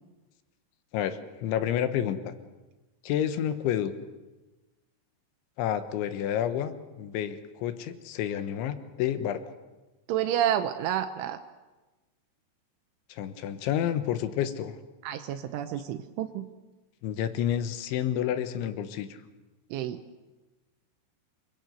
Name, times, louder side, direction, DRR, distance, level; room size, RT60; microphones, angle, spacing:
voice 1, 0.9-2.3 3.0-3.9 5.6-9.4 13.1-14.8 17.0-19.1, left 10 dB, 80° left, 10 dB, 3.6 m, -29 dB
voice 2, 10.1-11.4 15.0-16.5 19.7-20.0, right 10 dB, 85° right, 7 dB, 3.4 m, -29 dB
28.5 x 21.0 x 8.0 m, 1.2 s
omnidirectional pair, 5.4 m